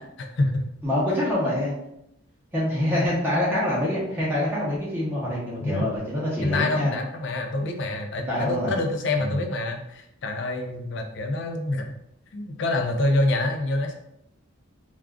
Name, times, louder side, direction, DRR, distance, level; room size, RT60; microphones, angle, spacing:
voice 1, 0.2-0.7 5.6-5.9 6.4-11.9 12.3-13.9, left 2 dB, 60° left, 4 dB, 0.4 m, -26 dB
voice 2, 0.8-1.7 2.5-6.9 8.2-8.7 9.2-9.4, left 1 dB, 10° right, -8 dB, 0.7 m, -25 dB
2.4 x 2.3 x 3.4 m, 0.78 s
head